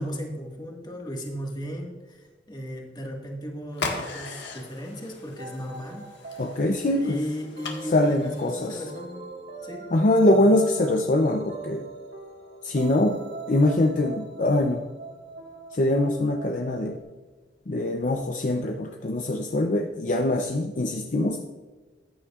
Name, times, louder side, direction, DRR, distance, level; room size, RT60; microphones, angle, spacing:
voice 1, 0.0-6.5 6.9-9.2 9.6-9.9 10.2-10.6, equal, 25° left, 0 dB, 1.7 m, -36 dB
sound 1, 3.7-8.9, left 3 dB, 80° left, 1.6 m, -38 dB
sound 2, 5.4-17.0, right 3 dB, 65° right, 1.7 m, -42 dB
voice 2, 6.4-7.2 7.9-8.8 9.9-11.9 12.6-13.2 13.5-14.8 15.7-17.0 17.7-21.4, left 1 dB, 45° left, 4 dB, 0.6 m, -23 dB
14.0 x 9.6 x 2.4 m, 1.4 s
head